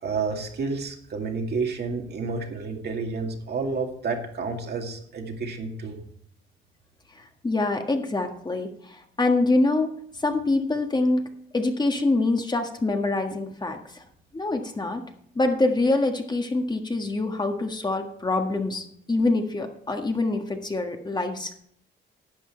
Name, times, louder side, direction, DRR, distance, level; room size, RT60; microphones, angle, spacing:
voice 1, 0.0-6.0, right 4 dB, 55° right, 3 dB, 2.3 m, -30 dB
voice 2, 7.1-9.9 10.2-11.2 11.5-14.0 14.3-15.0 15.3-21.6, left 2 dB, 20° left, 4 dB, 1.6 m, -25 dB
12.0 x 8.0 x 4.5 m, 0.66 s
cardioid pair, 90°, 20 cm